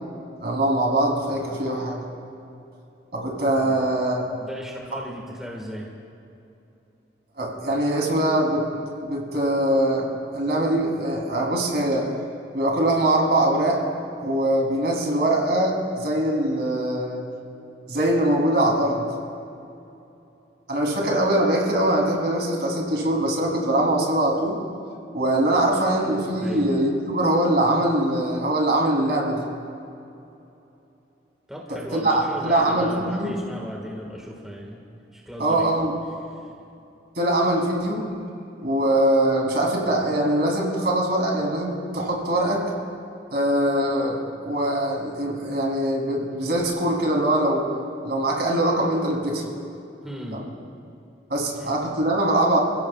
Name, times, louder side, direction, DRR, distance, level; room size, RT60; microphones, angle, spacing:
voice 1, 0.4-2.0 3.1-4.2 4.9-5.0 7.4-8.7 9.0-12.1 12.5-13.8 14.2-17.2 17.9-19.0 20.7-24.6 25.1-29.4 31.7-33.4 35.4-36.0 37.1-38.1 38.6-42.7 43.3-47.7 48.0-49.4 50.3-50.4 51.3-52.6, right 1 dB, 60° right, -2 dB, 3.3 m, -22 dB
voice 2, 4.3-5.9 26.4-26.7 31.5-34.8 35.1-35.7 50.0-50.4 51.6-51.7, equal, 5° right, -2 dB, 1.7 m, -36 dB
28.5 x 16.0 x 2.4 m, 2.8 s
head